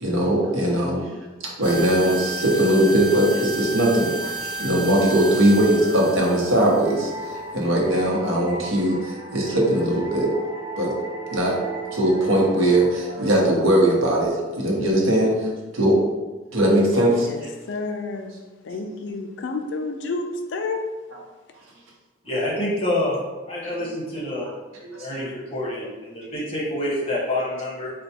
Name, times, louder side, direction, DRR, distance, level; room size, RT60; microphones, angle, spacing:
voice 1, 0.0-1.1 1.4-7.1 7.5-10.3 10.8-10.9 11.3-11.5 11.9-16.0 16.5-17.5 24.8-25.2, right 1 dB, 80° right, -2 dB, 0.8 m, -20 dB
sound 1, 1.6-7.9, right 3 dB, 25° right, 0.5 m, -33 dB
sound 2, 5.8-15.2, right 2 dB, 60° right, 1.4 m, -36 dB
voice 2, 17.2-18.3 18.6-20.9, left 3 dB, 60° left, 4 dB, 0.3 m, -30 dB
voice 3, 22.3-23.1 23.5-24.5 24.9-27.9, left 1 dB, 30° left, -5 dB, 0.9 m, -27 dB
4.3 x 2.2 x 2.7 m, 1.2 s
head